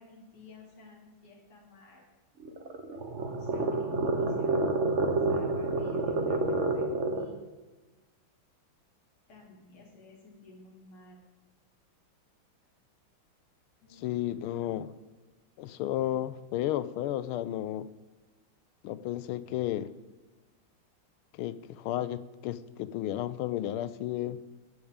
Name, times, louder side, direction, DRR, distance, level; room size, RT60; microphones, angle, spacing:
voice 1, 0.0-2.0 3.4-4.6 4.9-7.4 9.3-11.2 13.8-14.1, left 2 dB, 50° left, -3 dB, 3.0 m, -54 dB
sound 1, 2.4-7.4, right 2 dB, 45° right, 1.0 m, -29 dB
voice 2, 13.9-14.9 15.6-17.9 18.8-19.9 21.4-24.4, left 13 dB, 85° left, 14 dB, 1.5 m, -33 dB
15.0 x 9.5 x 3.6 m, 1.2 s
omnidirectional pair, 2.3 m